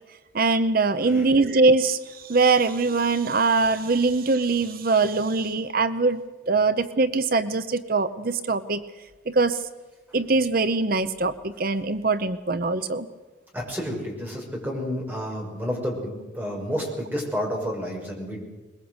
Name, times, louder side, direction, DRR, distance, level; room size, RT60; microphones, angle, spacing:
voice 1, 0.3-2.0 2.3-6.2 6.5-8.8 9.3-9.6 10.1-13.1, right 3 dB, 50° right, 12 dB, 0.8 m, -22 dB
voice 2, 1.0-1.4 13.5-18.4, equal, 10° right, -1 dB, 6.4 m, -30 dB
22.0 x 21.5 x 8.1 m, 1.2 s
head